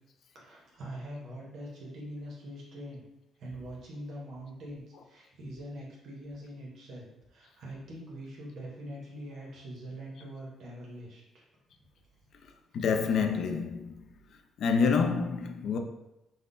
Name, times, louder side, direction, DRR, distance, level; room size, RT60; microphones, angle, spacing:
voice 1, 0.3-3.0 3.4-11.4, right 1 dB, 70° right, 0.7 m, -43 dB
voice 2, 12.7-14.0 14.6-15.8, left 5 dB, 65° left, 0.3 m, -27 dB
3.5 x 2.0 x 2.5 m
cardioid pair, 90°, 0 cm